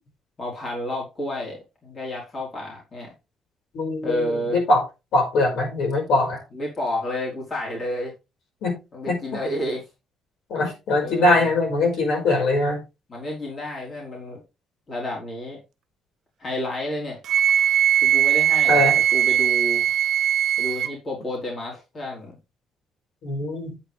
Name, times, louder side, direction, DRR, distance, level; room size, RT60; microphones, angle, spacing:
voice 1, 0.4-3.1 4.0-4.6 6.5-8.1 8.9-9.8 11.0-11.5 13.1-14.4 14.9-15.6 16.4-17.2 18.0-19.9 20.6-22.4, left 1 dB, 30° left, -2 dB, 3.6 m, -30 dB
voice 2, 3.7-4.8 5.1-6.4 8.6-8.8 9.1-9.4 10.5-12.8 18.7-19.0 23.2-23.8, left 2 dB, 75° left, 2 dB, 5.0 m, -22 dB
Wind instrument woodwind instrument, 17.3-20.9, right 11 dB, 65° right, 0.5 m, -20 dB
8.8 x 8.5 x 3.4 m, 0.26 s
cardioid pair, 155°, 0 cm